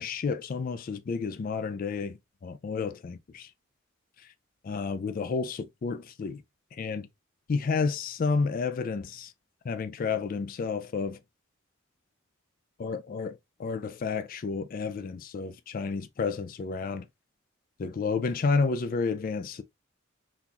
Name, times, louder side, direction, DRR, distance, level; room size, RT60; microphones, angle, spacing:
voice 1, 0.0-3.5 4.6-6.4 6.7-7.1 7.5-9.3 9.6-11.2 12.8-17.1 17.8-19.6, left 4 dB, 45° left, 0.3 m, -31 dB
3.8 x 2.4 x 2.8 m
head